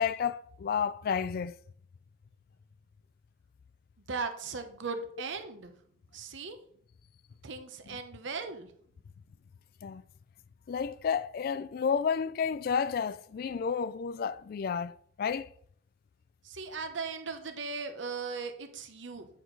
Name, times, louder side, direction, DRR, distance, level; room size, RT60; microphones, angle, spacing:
voice 1, 0.0-1.5 7.9-8.0 9.8-10.0 10.7-15.5, left 6 dB, 50° left, 0.3 m, -31 dB
voice 2, 4.1-5.7 6.1-6.6 7.4-8.7 16.4-19.3, right 4 dB, 75° right, 0.8 m, -38 dB
8.3 x 4.6 x 3.9 m
head